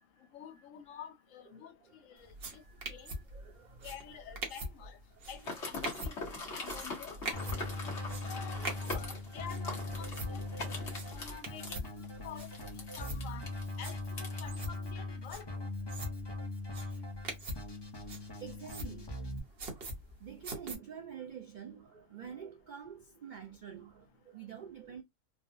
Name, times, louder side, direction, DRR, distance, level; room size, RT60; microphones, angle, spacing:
voice 1, 0.3-2.6 2.9-3.1 3.8-5.0 5.3-7.7 8.2-10.8 11.1-11.9 12.2-12.5 12.8-15.6, left 9 dB, 75° left, 1.0 m, -49 dB
voice 2, 1.5-5.9 6.3-6.4 7.1-9.0 10.4-11.1 18.0-19.2 20.2-25.0, right 8 dB, 85° right, 0.4 m, -50 dB
sound 1, 2.2-20.7, right 1 dB, 50° right, 1.0 m, -44 dB
sound 2, 5.4-14.4, left 2 dB, 60° left, 1.3 m, -43 dB
Keyboard (musical), 7.3-19.4, left 2 dB, 25° left, 0.6 m, -41 dB
3.5 x 2.1 x 2.5 m
omnidirectional pair, 1.4 m